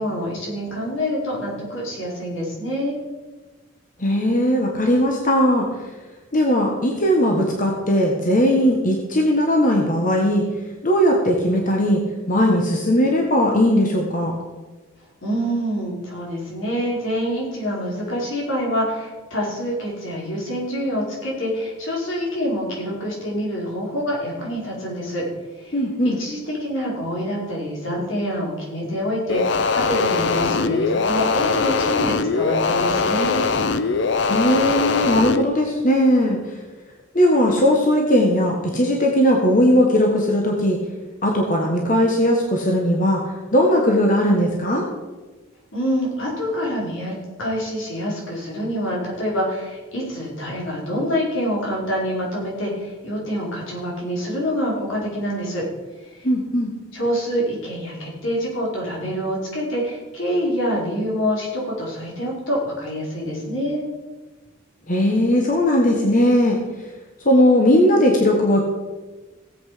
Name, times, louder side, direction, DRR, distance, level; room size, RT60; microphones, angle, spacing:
voice 1, 0.0-3.0 15.2-25.2 25.6-25.8 26.0-33.4 45.7-55.6 56.1-56.3 56.9-63.8, equal, 80° left, -4 dB, 4.7 m, -26 dB
voice 2, 4.0-5.7 6.3-10.4 10.8-12.0 12.3-14.4 25.7-26.2 34.3-36.4 37.1-40.8 41.2-43.2 43.5-44.9 56.2-56.7 64.9-66.6 67.2-68.6, equal, 40° left, 0 dB, 1.5 m, -18 dB
sound 1, 29.3-35.4, left 4 dB, 60° left, 0.6 m, -21 dB
17.5 x 8.0 x 5.0 m, 1.3 s
head